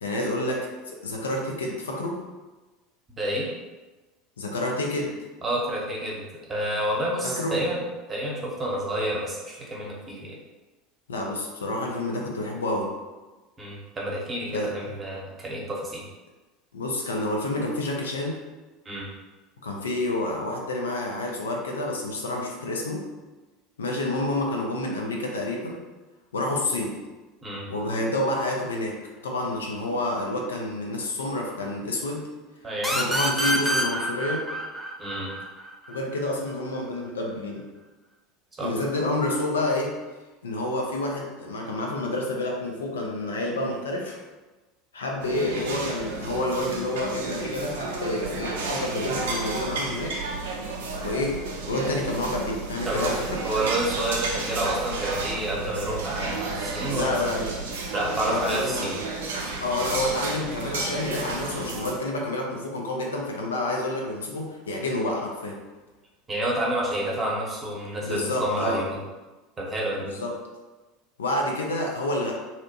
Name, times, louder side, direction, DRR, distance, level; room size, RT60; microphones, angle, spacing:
voice 1, 0.0-2.2 4.4-5.2 7.2-7.6 11.1-12.9 14.5-14.9 16.7-18.4 19.6-23.1 23.8-25.8 26.3-26.9 27.7-32.3 33.0-34.5 35.9-37.6 38.6-39.9 40.4-44.2 44.9-50.2 51.0-51.4 51.7-53.4 56.9-57.5 58.3-58.9 59.6-65.6 68.0-68.8 70.1-70.4 71.2-72.3, left 1 dB, 80° left, 0 dB, 0.4 m, -29 dB
voice 2, 3.2-3.5 5.4-6.2 6.5-7.8 8.1-10.4 13.6-16.0 18.8-19.1 27.4-27.7 32.6-33.0 35.0-35.3 38.6-38.7 52.9-53.1 53.4-57.3 57.9-58.9 66.3-69.0 69.6-70.1, right 1 dB, 25° right, -3 dB, 0.8 m, -29 dB
sound 1, 32.8-36.2, right 1 dB, ahead, 0.4 m, -27 dB
sound 2, 45.2-61.9, right 3 dB, 70° right, 0.4 m, -32 dB
2.7 x 2.1 x 2.7 m, 1.2 s
figure-of-eight pair, 75°, 0 cm